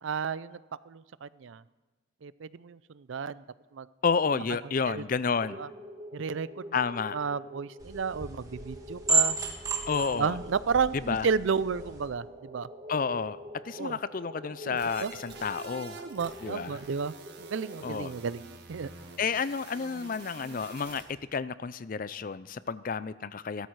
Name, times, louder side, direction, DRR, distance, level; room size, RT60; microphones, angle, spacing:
voice 1, 0.0-0.6 0.9-1.6 2.2-3.4 3.7-3.9 4.9-5.0 5.6-5.7 6.1-6.6 7.1-9.4 10.2-12.7 13.8-14.0 14.6-15.1 16.0-18.4 18.7-18.9, right 5 dB, 70° right, 18 dB, 0.4 m, -32 dB
voice 2, 4.0-5.6 6.7-7.2 9.9-10.4 10.9-11.3 12.9-13.4 13.6-16.0 16.4-16.8 17.8-18.1 19.2-23.7, left 5 dB, 45° left, 17 dB, 0.4 m, -30 dB
sound 1, 5.4-18.1, equal, 35° right, 2.5 m, -46 dB
sound 2, 7.8-12.1, right 3 dB, 15° right, 1.6 m, -32 dB
sound 3, 14.8-21.0, right 4 dB, 55° right, 1.9 m, -48 dB
17.0 x 13.5 x 4.7 m, 1.2 s
head